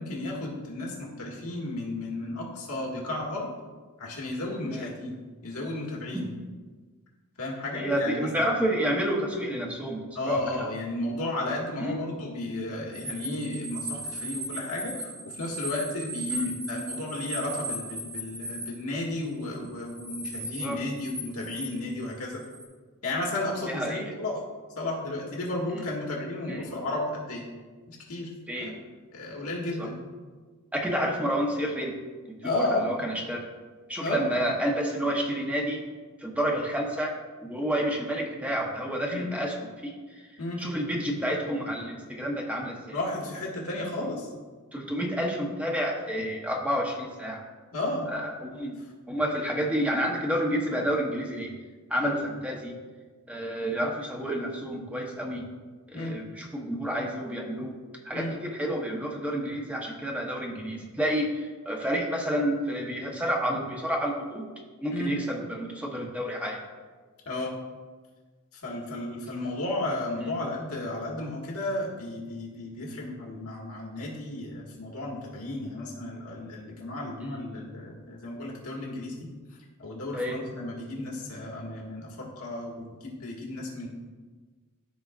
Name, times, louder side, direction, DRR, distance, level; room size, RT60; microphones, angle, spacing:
voice 1, 0.0-3.5 4.0-6.3 7.4-8.5 10.2-22.4 23.0-24.4 24.8-27.4 27.9-28.3 28.6-28.7 29.1-30.0 32.4-32.9 34.0-34.2 39.1-39.3 40.4-40.6 42.9-44.3 47.7-48.1 52.0-52.1 55.9-56.2 58.1-58.3 64.9-65.1 67.3-67.5 68.6-79.3 79.8-83.9, left 2 dB, 85° left, -3 dB, 1.8 m, -33 dB
voice 2, 7.7-10.7 11.8-12.0 16.3-16.5 20.3-20.8 23.7-24.1 26.5-26.6 28.5-28.8 29.8-29.9 30.7-31.9 32.4-33.5 33.9-35.8 36.2-39.5 39.8-39.9 40.6-43.0 44.7-47.4 48.1-48.8 49.1-51.5 51.9-52.7 53.3-55.4 55.9-57.7 58.0-64.4 64.8-66.6 70.2-70.3 77.3-77.4 80.1-80.4, equal, 5° right, 0 dB, 0.9 m, -29 dB
sound 1, 12.9-18.7 19.4-20.7 20.9-22.7, right 1 dB, 80° right, 1.3 m, -37 dB
13.5 x 4.7 x 2.4 m, 1.4 s
head